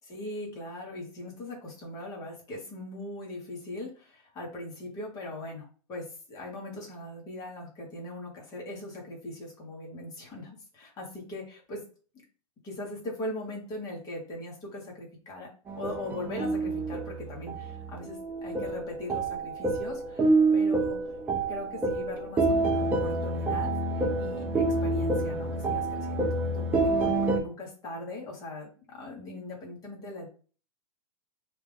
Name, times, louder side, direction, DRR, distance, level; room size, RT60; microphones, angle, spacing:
voice 1, 0.1-11.8 12.6-15.5 15.8-21.1 21.5-30.3, left 1 dB, 20° left, -1 dB, 1.2 m, -40 dB
sound 1, 15.7-27.4, right 2 dB, 10° right, 0.5 m, -28 dB
3.1 x 2.5 x 3.4 m, 0.39 s
supercardioid pair, 160°, 17 cm